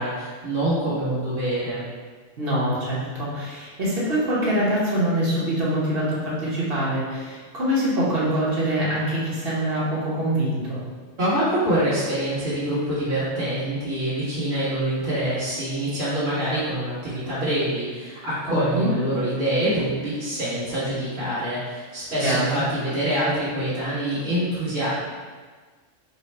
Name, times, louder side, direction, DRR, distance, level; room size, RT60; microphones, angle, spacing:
voice 1, 0.0-1.9 11.2-24.9, right 1 dB, 85° right, -13 dB, 1.7 m, -25 dB
voice 2, 2.4-10.8 18.5-18.9 22.2-22.6, right 1 dB, 50° right, -7 dB, 1.3 m, -24 dB
4.5 x 2.2 x 4.1 m, 1.5 s
omnidirectional pair, 1.3 m